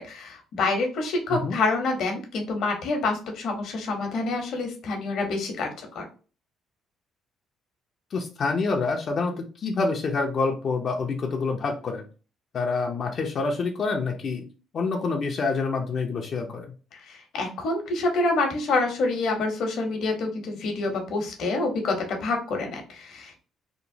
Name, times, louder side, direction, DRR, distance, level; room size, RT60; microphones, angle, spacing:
voice 1, 0.0-6.1 17.0-23.4, left 3 dB, 65° left, 3 dB, 0.8 m, -27 dB
voice 2, 8.1-12.1 12.5-14.4 14.7-16.7, left 4 dB, 50° left, 2 dB, 0.5 m, -27 dB
2.9 x 2.1 x 2.6 m, 0.36 s
cardioid pair, 90°, 0 cm